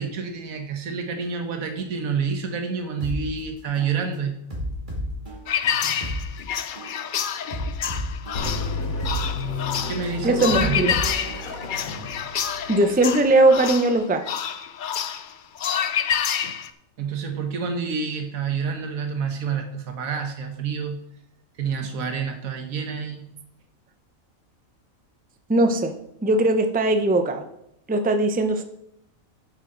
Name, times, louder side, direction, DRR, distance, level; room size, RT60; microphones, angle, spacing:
voice 1, 0.0-4.4 9.9-10.9 17.0-21.0 21.6-23.3, right 6 dB, 90° right, 5 dB, 1.5 m, -28 dB
sound 1, 3.0-3.2 3.8-4.0 4.5-6.2 6.8-7.0 7.5-9.2 9.8-10.0 10.5-12.0, equal, 35° right, 2.5 m, -32 dB
sound 2, 5.5-16.7, left 8 dB, 55° left, 0.5 m, -28 dB
sound 3, 8.3-13.8, left 3 dB, 85° left, 1.8 m, -32 dB
voice 2, 10.2-10.9 12.3-14.2 25.5-25.9 26.2-27.4 27.9-28.6, right 2 dB, 10° right, 7 dB, 0.5 m, -20 dB
9.5 x 8.0 x 3.9 m, 0.77 s
omnidirectional pair, 1.4 m